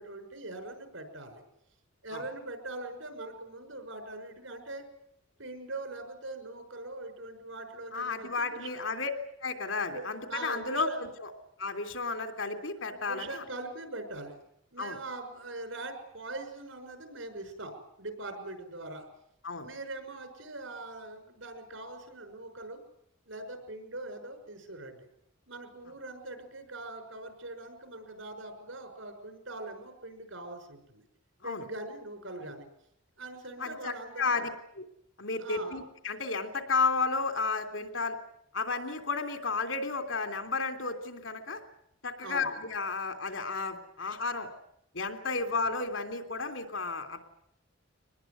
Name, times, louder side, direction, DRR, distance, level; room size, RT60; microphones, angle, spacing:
voice 1, 0.0-1.4 2.0-4.8 5.4-8.8 9.9-11.0 12.8-14.4 14.7-19.1 19.6-22.8 23.3-25.1 25.5-31.0 31.4-32.7 33.2-34.4 35.4-35.8 42.2-42.5, right 2 dB, 80° right, 6 dB, 6.0 m, -42 dB
voice 2, 7.9-9.1 9.4-11.3 11.6-13.4 14.8-15.0 19.4-19.7 31.4-31.6 33.6-34.5 34.8-34.9 35.2-38.2 38.5-41.6 42.0-44.5 44.9-47.2, left 4 dB, 75° left, 7 dB, 3.2 m, -32 dB
24.0 x 20.0 x 9.5 m, 0.75 s
head